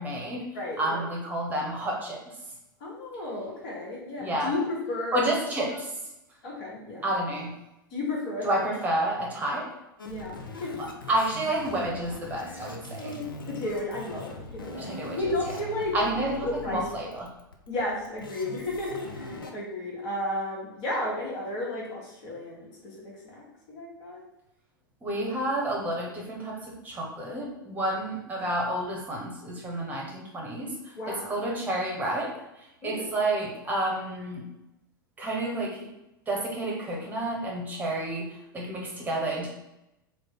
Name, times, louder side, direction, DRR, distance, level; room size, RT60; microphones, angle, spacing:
voice 1, 0.0-0.4 0.8-2.2 4.2-4.5 5.1-5.9 7.0-7.5 8.4-9.6 10.8-13.1 14.8-15.2 15.9-17.3 25.0-26.5 26.8-30.7 31.1-32.3 32.8-34.4 35.2-35.9 36.3-38.3 38.5-39.5, right 1 dB, 15° right, -2 dB, 1.0 m, -30 dB
voice 2, 0.5-1.0 2.8-5.2 5.7-5.8 6.4-7.1 7.9-8.5 9.5-9.6 10.0-10.8 13.0-16.8 17.7-24.2 31.0-31.3 32.8-33.1, left 2 dB, 45° left, -4 dB, 1.3 m, -33 dB
sound 1, 10.0-19.5, left 3 dB, 75° left, 0.5 m, -42 dB
3.2 x 2.1 x 3.8 m, 0.90 s
figure-of-eight pair, 90°, 12 cm